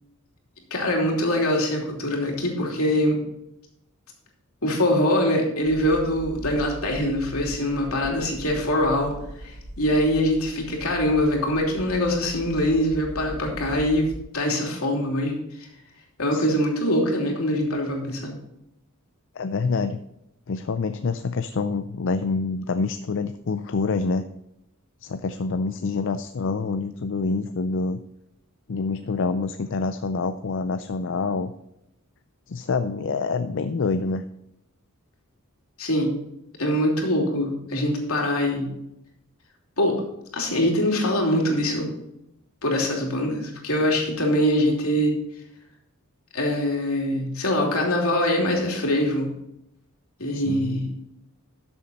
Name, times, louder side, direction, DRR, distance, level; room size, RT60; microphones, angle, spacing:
voice 1, 0.7-3.2 4.6-9.1 9.4-15.7 16.2-18.4 35.8-36.1 36.6-38.7 39.8-40.0 40.3-41.9 42.6-45.1 46.3-49.3 50.2-50.9, left 1 dB, 80° left, 0 dB, 3.0 m, -23 dB
sound 1, 5.6-14.2, right 1 dB, 50° right, 1.5 m, -40 dB
voice 2, 19.4-20.0 20.5-24.3 25.0-28.0 28.7-31.5 32.5-34.2 50.3-50.8, left 4 dB, 60° left, 10 dB, 0.5 m, -26 dB
12.5 x 7.3 x 4.1 m, 0.83 s
head